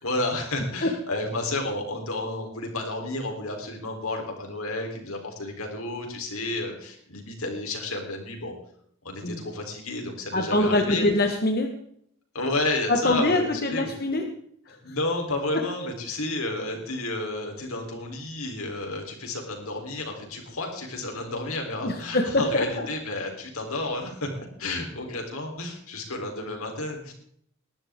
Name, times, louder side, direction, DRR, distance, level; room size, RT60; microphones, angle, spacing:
voice 1, 0.0-8.5 9.0-11.1 12.3-13.9 14.8-24.3 24.6-27.1, left 2 dB, 80° left, 2 dB, 3.9 m, -31 dB
voice 2, 10.3-11.7 12.9-14.2 14.7-15.0 21.8-22.9, left 2 dB, 45° left, 3 dB, 1.4 m, -24 dB
19.5 x 12.0 x 3.7 m, 0.67 s
head